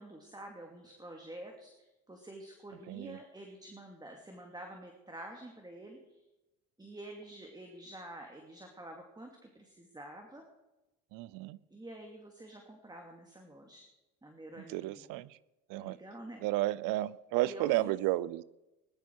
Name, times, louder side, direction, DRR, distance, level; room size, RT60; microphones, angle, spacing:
voice 1, 0.0-6.2 6.8-10.4 11.7-13.9 14.2-15.1 15.8-16.5 17.4-17.9, right 1 dB, 10° right, 2 dB, 2.6 m, -48 dB
voice 2, 2.9-3.2 11.1-11.6 14.7-15.3 15.7-16.0 16.4-18.4, right 16 dB, 75° right, 21 dB, 0.7 m, -32 dB
20.5 x 12.0 x 4.8 m, 0.99 s
supercardioid pair, 85°, 33 cm